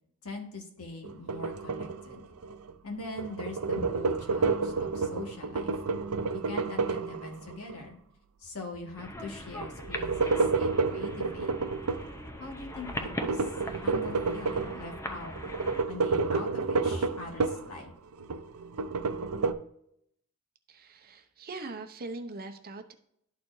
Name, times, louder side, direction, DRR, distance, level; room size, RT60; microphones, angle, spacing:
voice 1, 0.2-2.3 2.8-5.8 6.5-8.0 8.4-11.5 12.4-15.4 15.9-17.9, left 2 dB, 80° left, 1 dB, 1.8 m, -42 dB
sound 1, 1.0-2.7 3.0-7.8 9.6-12.1 13.0-15.0 15.4-17.7 18.1-19.5, right 4 dB, 85° right, 0.5 m, -30 dB
sound 2, 9.0-15.8, left 1 dB, 15° left, 0.7 m, -41 dB
voice 2, 20.7-22.9, right 2 dB, 45° right, 6 dB, 0.7 m, -41 dB
12.0 x 4.3 x 2.6 m, 0.73 s
head